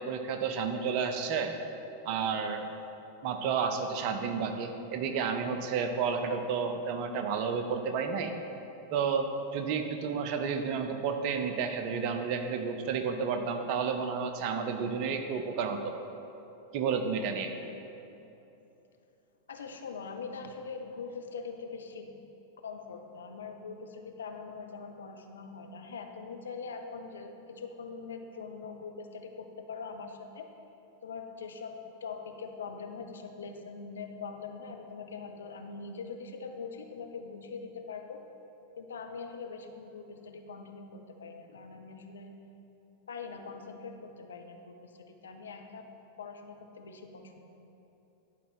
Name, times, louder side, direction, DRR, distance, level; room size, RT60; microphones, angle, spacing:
voice 1, 0.0-1.5 2.1-2.7 3.2-8.3 8.9-9.3 9.5-15.9 16.7-17.5, right 6 dB, 45° right, 6 dB, 0.7 m, -31 dB
voice 2, 19.5-22.2 22.6-30.5 31.0-38.2 38.7-42.3 43.1-45.9 46.2-47.4, left 5 dB, 65° left, 5 dB, 0.7 m, -42 dB
11.0 x 4.1 x 6.0 m, 2.9 s
figure-of-eight pair, 90°, 0 cm